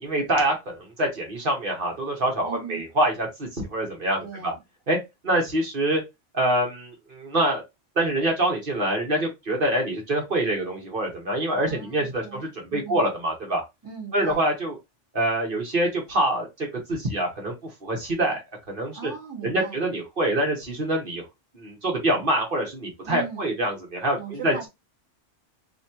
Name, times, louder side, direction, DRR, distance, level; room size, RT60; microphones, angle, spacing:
voice 1, 0.0-4.5 4.9-5.0 5.2-6.0 6.3-7.6 8.0-13.6 14.1-14.8 15.1-17.5 17.8-18.4 18.7-19.1 19.4-21.2 21.5-24.7, right 1 dB, 45° right, 1.4 m, -25 dB
voice 2, 2.4-2.8 4.2-4.6 11.6-13.0 13.8-14.5 18.9-19.8 23.0-23.5 24.2-24.7, right 7 dB, 20° right, 1.5 m, -38 dB
4.1 x 2.9 x 2.8 m
omnidirectional pair, 1.3 m